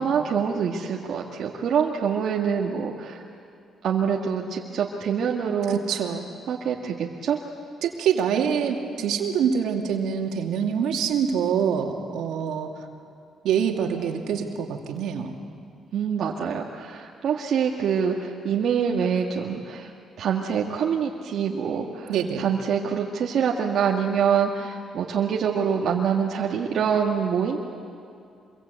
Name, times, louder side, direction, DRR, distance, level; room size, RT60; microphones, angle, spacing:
voice 1, 0.0-3.2 3.8-5.8 6.5-7.4 15.9-19.9 20.2-27.6, right 7 dB, 70° right, -1 dB, 1.8 m, -25 dB
voice 2, 5.7-6.2 7.8-12.7 13.4-15.4 22.1-22.5, right 7 dB, 85° right, 3 dB, 2.6 m, -25 dB
26.0 x 23.5 x 8.3 m, 2.5 s
cardioid pair, 90°, 0 cm